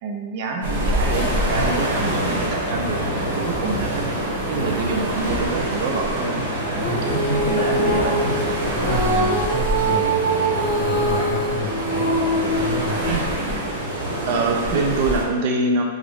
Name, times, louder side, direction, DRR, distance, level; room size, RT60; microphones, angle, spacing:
voice 1, 0.0-4.0 4.5-6.4 7.4-8.1 13.1-13.2 14.3-15.8, right 3 dB, 40° right, 2 dB, 0.4 m, -25 dB
sound 1, 0.6-15.2, right 1 dB, 90° right, 1.0 m, -25 dB
voice 2, 6.8-13.0, left 1 dB, 50° left, -4 dB, 0.8 m, -29 dB
Female singing, 6.8-13.3, right 2 dB, 15° right, 1.0 m, -24 dB
3.5 x 2.1 x 3.3 m, 1.5 s
supercardioid pair, 170°, 0 cm